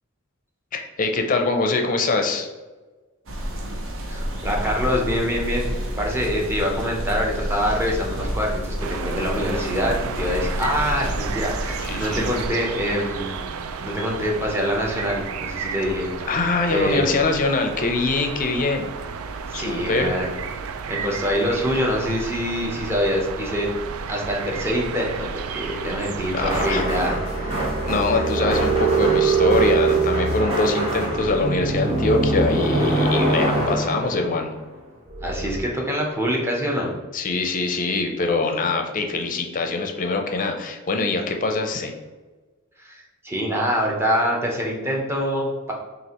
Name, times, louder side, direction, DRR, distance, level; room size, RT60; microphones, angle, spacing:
voice 1, 0.7-2.5 11.8-12.3 16.3-18.9 19.5-20.1 26.3-26.9 27.8-34.5 37.1-41.9, left 3 dB, 40° left, 4 dB, 0.5 m, -23 dB
sound 1, 3.3-12.5, equal, 65° right, 0.7 m, -30 dB
voice 2, 4.1-13.5 13.8-16.3 16.7-17.2 19.5-20.3 20.9-23.7 24.1-27.1 27.4-27.7 35.2-36.9 42.8-45.7, equal, 10° right, -1 dB, 0.8 m, -25 dB
sound 2, 8.8-26.7, right 5 dB, 90° right, 0.4 m, -32 dB
sound 3, 26.4-34.7 35.1-35.6, right 3 dB, 30° right, 1.1 m, -22 dB
6.2 x 2.5 x 2.9 m, 1.3 s
head